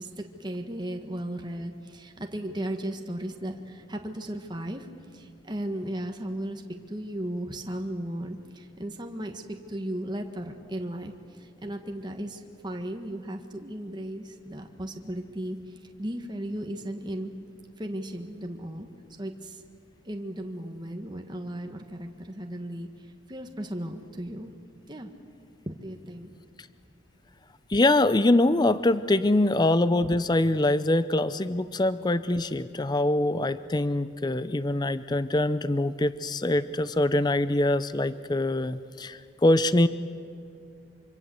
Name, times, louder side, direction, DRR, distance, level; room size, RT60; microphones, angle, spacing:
voice 1, 0.0-4.9 5.1-6.6 6.9-17.3 17.8-18.9 19.2-19.6 20.0-24.5 24.9-25.1 25.6-26.3, right 1 dB, 20° right, 4 dB, 1.5 m, -36 dB
voice 2, 27.7-39.9, left 1 dB, 20° left, 14 dB, 0.5 m, -24 dB
25.5 x 25.5 x 7.8 m, 2.5 s
head